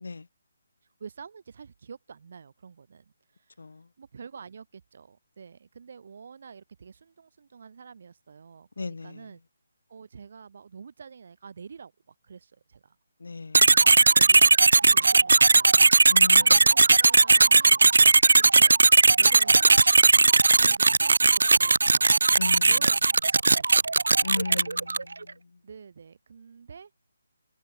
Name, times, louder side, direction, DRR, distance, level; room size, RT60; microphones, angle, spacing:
voice 1, 1.0-3.0 3.3-3.7 4.0-9.4 9.9-13.0 14.1-14.5 14.8-15.8 16.3-17.8 18.4-18.7 19.2-19.8 20.5-22.1 22.5-23.8 25.6-26.9, right 6 dB, 45° right, 5.8 m, -47 dB
voice 2, 8.8-9.2 13.2-14.0 16.1-16.4 22.4-22.7 24.2-25.4, left 3 dB, 75° left, 0.6 m, -36 dB
sound 1, 13.5-25.1, right 3 dB, 85° right, 0.3 m, -18 dB
hypercardioid pair, 175°, 0 cm